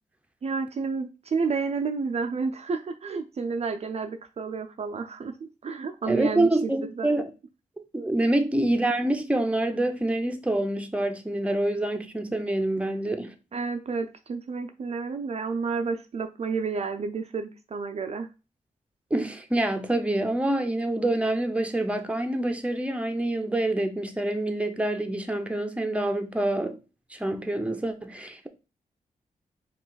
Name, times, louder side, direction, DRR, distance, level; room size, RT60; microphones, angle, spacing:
voice 1, 0.4-6.7 7.0-7.1 13.5-18.3, right 4 dB, 50° right, 0.5 m, -30 dB
voice 2, 6.1-7.3 7.9-13.3 19.1-26.8 27.1-28.5, right 1 dB, 10° right, 0.7 m, -26 dB
4.7 x 2.5 x 4.0 m
cardioid pair, 75°, 14 cm